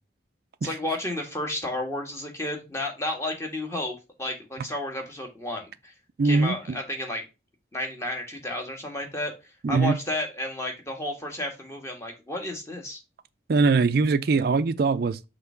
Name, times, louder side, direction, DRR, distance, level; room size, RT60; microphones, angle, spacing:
voice 1, 0.6-5.9 6.2-7.2 7.7-13.0, left 1 dB, 15° left, 1.5 m, -32 dB
voice 2, 6.2-6.8 9.6-9.9 13.5-15.3, right 4 dB, 50° right, 0.4 m, -22 dB
5.7 x 3.3 x 5.6 m
head